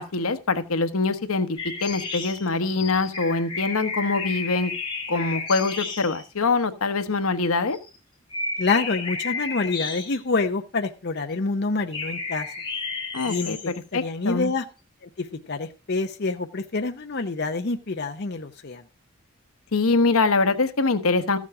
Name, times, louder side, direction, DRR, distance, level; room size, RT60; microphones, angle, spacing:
voice 1, 0.0-4.7 5.1-7.8 13.1-14.5 19.7-21.4, left 3 dB, 85° left, 10 dB, 1.1 m, -24 dB
sound 1, 1.6-6.2 7.7-8.0 8.3-10.5 11.9-13.8, left 4 dB, 25° left, 1.9 m, -32 dB
voice 2, 8.6-12.5 13.3-13.6 13.9-14.6 15.2-18.8, left 3 dB, 50° left, 6 dB, 0.7 m, -27 dB
14.0 x 7.3 x 4.8 m, 0.32 s
head